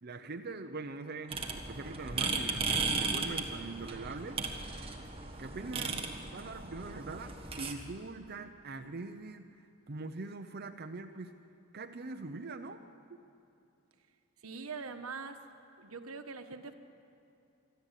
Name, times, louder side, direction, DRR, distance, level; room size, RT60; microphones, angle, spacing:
voice 1, 0.0-4.4 5.4-11.4 11.7-12.8 13.1-13.2, right 3 dB, 45° right, 5 dB, 0.7 m, -43 dB
sound 1, 1.3-7.7, right 4 dB, 25° right, 1.5 m, -36 dB
voice 2, 14.4-15.4 15.8-16.7, right 4 dB, 85° right, 7 dB, 1.3 m, -43 dB
25.0 x 13.0 x 8.3 m, 2.6 s
head